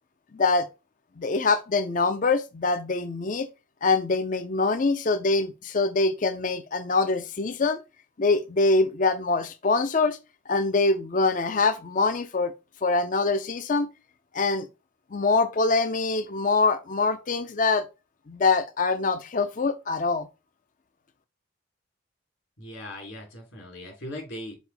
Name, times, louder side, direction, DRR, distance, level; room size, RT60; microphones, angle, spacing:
voice 1, 0.3-0.7 1.2-3.5 3.8-7.8 8.2-10.2 10.5-12.5 12.8-13.9 14.3-14.7 15.1-17.8 18.3-20.3, left 3 dB, 40° left, 0.5 m, -24 dB
voice 2, 22.6-24.6, left 1 dB, 75° left, 3.2 m, -39 dB
6.3 x 4.7 x 3.4 m
head